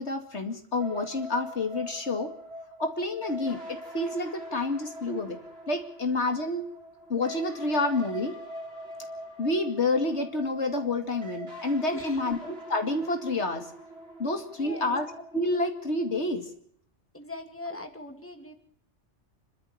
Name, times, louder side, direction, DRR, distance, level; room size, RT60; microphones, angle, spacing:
voice 1, 0.0-2.3 2.8-5.4 5.7-6.7 7.1-8.4 9.4-13.7 14.2-16.5, left 2 dB, 70° left, 6 dB, 2.7 m, -29 dB
sound 1, 0.8-16.3, equal, 75° right, 6.9 m, -43 dB
voice 2, 14.5-15.0 17.1-18.5, left 1 dB, 10° left, 5 dB, 2.7 m, -40 dB
27.0 x 12.5 x 8.6 m, 0.66 s
omnidirectional pair, 1.2 m